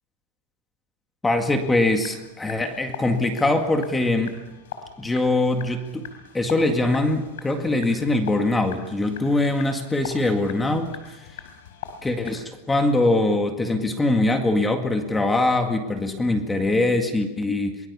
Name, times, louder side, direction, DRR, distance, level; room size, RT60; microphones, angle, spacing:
voice 1, 1.2-4.4 5.0-6.0 6.3-10.9 12.0-17.8, left 2 dB, 10° left, 5 dB, 2.0 m, -22 dB
sound 1, 1.7-12.4, left 8 dB, 90° left, 4.9 m, -42 dB
24.0 x 20.5 x 7.0 m, 1.0 s
supercardioid pair, 145°, 0 cm